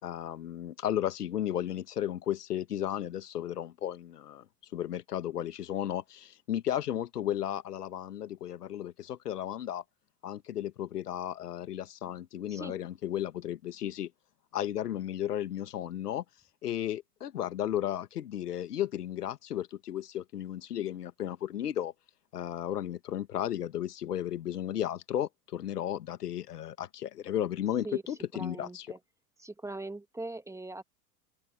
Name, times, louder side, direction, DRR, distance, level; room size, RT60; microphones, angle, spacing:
voice 1, 0.0-4.5 4.7-9.8 10.2-14.1 14.5-16.2 16.6-21.9 22.3-28.9, left 11 dB, 75° left, 1.9 m, -34 dB
voice 2, 28.3-29.0 29.4-30.8, right 2 dB, 5° right, 2.5 m, -41 dB
hypercardioid pair, 95°, 47 cm